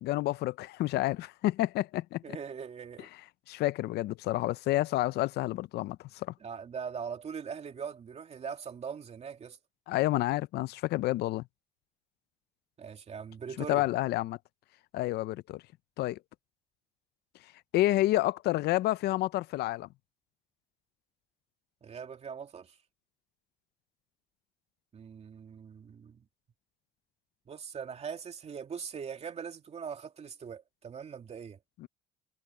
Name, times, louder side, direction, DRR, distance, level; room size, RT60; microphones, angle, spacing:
voice 1, 0.0-2.4 3.0-3.2 3.5-6.3 9.9-11.4 13.7-14.4 14.9-15.6 16.0-16.2 17.7-19.9 31.8-31.9, left 16 dB, 75° left, 0.5 m, -29 dB
voice 2, 2.2-3.1 6.4-9.6 12.8-13.8 21.8-22.7 24.9-26.2 27.5-31.6, right 6 dB, 40° right, 2.6 m, -41 dB
cardioid pair, 110°, 17 cm